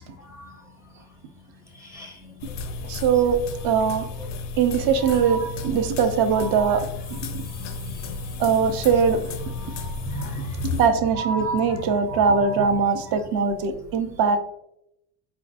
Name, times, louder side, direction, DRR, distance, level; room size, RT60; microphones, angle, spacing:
voice 1, 0.2-0.6 1.8-2.3 4.2-4.3 5.0-5.7 6.1-6.8 7.1-8.4 9.6-10.7 11.2-13.1, right 1 dB, 5° right, 2 dB, 0.5 m, -35 dB
sound 1, 2.4-10.9, left 4 dB, 45° left, 0.4 m, -34 dB
voice 2, 2.8-4.1 4.6-7.2 8.4-9.2 10.8-14.4, right 6 dB, 55° right, 8 dB, 0.7 m, -21 dB
4.4 x 3.8 x 2.4 m, 0.78 s
cardioid pair, 130°, 42 cm